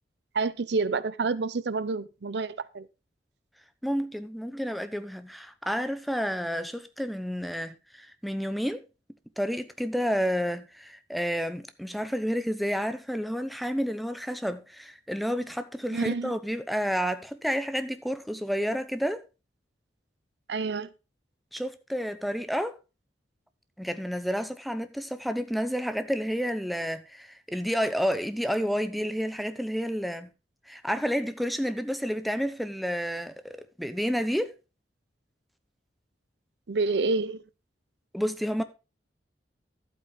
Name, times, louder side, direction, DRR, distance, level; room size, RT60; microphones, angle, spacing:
voice 1, 0.3-2.9 15.9-16.3 20.5-20.9 36.7-37.4, right 4 dB, 70° right, 0.6 m, -28 dB
voice 2, 3.8-8.8 9.4-19.2 21.5-22.8 23.8-30.3 30.7-34.5 38.1-38.6, equal, ahead, 0.8 m, -30 dB
11.5 x 8.3 x 3.8 m
head